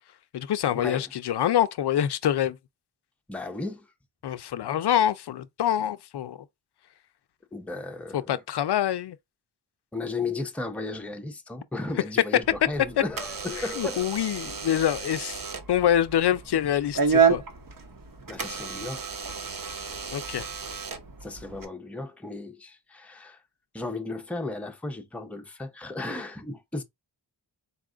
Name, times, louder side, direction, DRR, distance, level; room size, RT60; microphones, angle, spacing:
voice 1, 0.3-2.6 4.2-6.5 8.1-9.2 13.6-15.4 15.7-17.4 20.1-20.5, left 10 dB, 70° left, 0.5 m, -26 dB
voice 2, 3.3-3.9 7.5-8.4 9.9-14.1 18.3-19.2 19.9-20.0 21.2-23.4 23.7-26.8, left 2 dB, 5° left, 0.6 m, -35 dB
Door / Alarm, 12.4-21.7, right 6 dB, 55° right, 0.9 m, -30 dB
4.1 x 2.4 x 3.7 m
wide cardioid pair, 70°, 41 cm